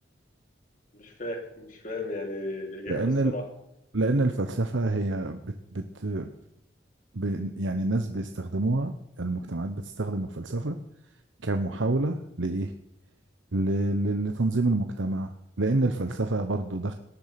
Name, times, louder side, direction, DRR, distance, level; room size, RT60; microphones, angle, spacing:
voice 1, 0.9-3.5, left 2 dB, 45° left, 2 dB, 3.5 m, -35 dB
voice 2, 2.9-3.3 3.9-6.3 7.1-10.8 11.4-12.7 13.5-15.3 15.6-16.9, right 2 dB, 90° right, 7 dB, 1.0 m, -27 dB
19.0 x 11.0 x 5.9 m, 0.81 s
head